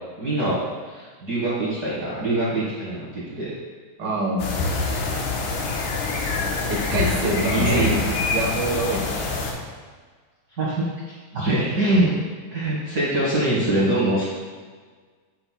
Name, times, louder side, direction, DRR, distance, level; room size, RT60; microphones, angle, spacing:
voice 1, 0.2-3.5 7.4-7.8 10.6-10.9 11.3-12.1 12.5-14.3, right 1 dB, 40° right, -9 dB, 1.5 m, -23 dB
voice 2, 4.0-4.5 6.7-8.0 8.3-9.2 11.3-11.5, right 1 dB, 55° right, -2 dB, 1.2 m, -25 dB
sound 1, 4.4-9.5, left 3 dB, 80° left, 2.3 m, -25 dB
8.6 x 7.6 x 2.2 m, 1.5 s
omnidirectional pair, 3.4 m